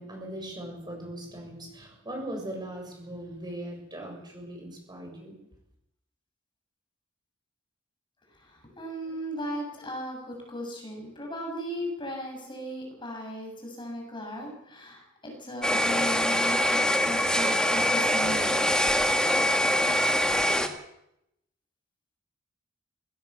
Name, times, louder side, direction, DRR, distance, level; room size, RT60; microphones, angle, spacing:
voice 1, 0.0-5.3, right 1 dB, 20° right, 1 dB, 7.0 m, -39 dB
voice 2, 8.5-18.7, equal, 25° left, 1 dB, 6.8 m, -36 dB
sound 1, 15.6-20.7, left 1 dB, 5° left, 1.9 m, -24 dB
20.0 x 17.5 x 8.0 m, 0.79 s
head